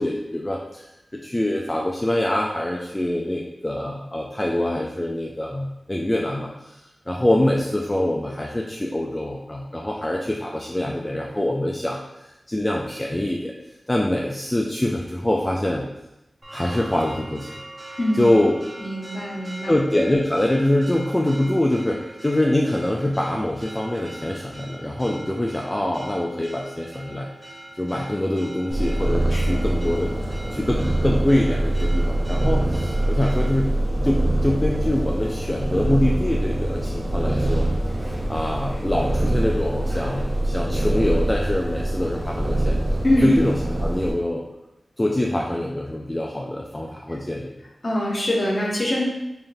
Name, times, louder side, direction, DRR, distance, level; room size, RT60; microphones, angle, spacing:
voice 1, 0.0-13.5 13.9-15.9 16.5-17.6 18.2-18.6 19.7-27.3 27.7-33.7 34.0-37.7 38.3-42.8 43.2-43.5 43.8-44.4 45.0-47.5, left 1 dB, 20° left, -1 dB, 0.4 m, -24 dB
Church bell, 16.4-33.6, right 1 dB, 30° right, 0.8 m, -42 dB
voice 2, 18.8-19.7 29.3-29.6 43.0-43.3 47.8-49.0, left 1 dB, 50° left, -4 dB, 1.2 m, -23 dB
Purr, 28.7-44.1, right 1 dB, 65° right, 0.7 m, -24 dB
3.8 x 3.4 x 2.6 m, 0.93 s
cardioid pair, 50°, 0 cm